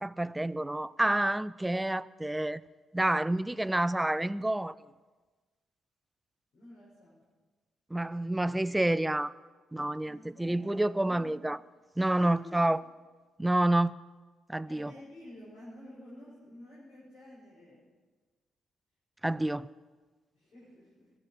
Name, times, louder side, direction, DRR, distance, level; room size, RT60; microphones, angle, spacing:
voice 1, 0.0-2.6 2.9-4.7 7.9-9.3 9.7-11.6 12.0-12.8 13.4-13.9 14.5-14.9 19.2-19.7, right 1 dB, 10° right, 20 dB, 0.4 m, -28 dB
voice 2, 6.5-7.2 10.0-11.3 12.1-12.8 14.7-17.9 20.3-21.1, left 1 dB, 60° left, -9 dB, 5.9 m, -50 dB
21.0 x 7.5 x 6.3 m, 1.3 s
figure-of-eight pair, 40°, 0 cm